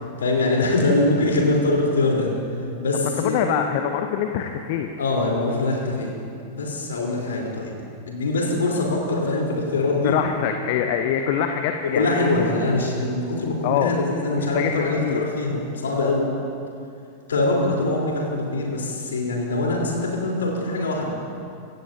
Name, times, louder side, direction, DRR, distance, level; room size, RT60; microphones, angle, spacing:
voice 1, 0.2-2.3 2.8-3.5 5.0-6.1 6.5-7.7 8.1-10.1 11.9-16.2 17.3-21.2, left 2 dB, 65° left, -2 dB, 3.8 m, -23 dB
voice 2, 2.9-4.9 10.0-12.3 13.6-13.9 14.3-15.2, left 9 dB, 50° left, 5 dB, 0.9 m, -24 dB
25.5 x 16.5 x 2.8 m, 2.5 s
figure-of-eight pair, 90°, 0 cm